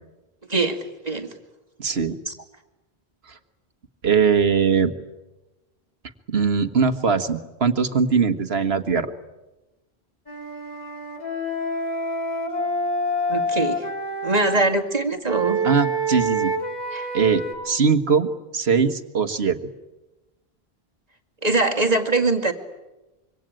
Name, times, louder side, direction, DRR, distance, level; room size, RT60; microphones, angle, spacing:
voice 1, 1.8-2.2 3.3-3.4 4.0-4.9 6.3-9.1 15.6-16.5 17.1-18.3 18.5-19.6, right 5 dB, 75° right, 9 dB, 1.8 m, -21 dB
Wind instrument woodwind instrument, 10.3-14.7 15.2-17.5, right 1 dB, 40° left, 3.9 m, -27 dB
voice 2, 13.3-13.9 14.2-15.6 16.9-17.1 21.4-22.5, right 3 dB, 40° right, 3 dB, 2.5 m, -22 dB
26.0 x 24.5 x 9.0 m, 1.0 s
omnidirectional pair, 1.1 m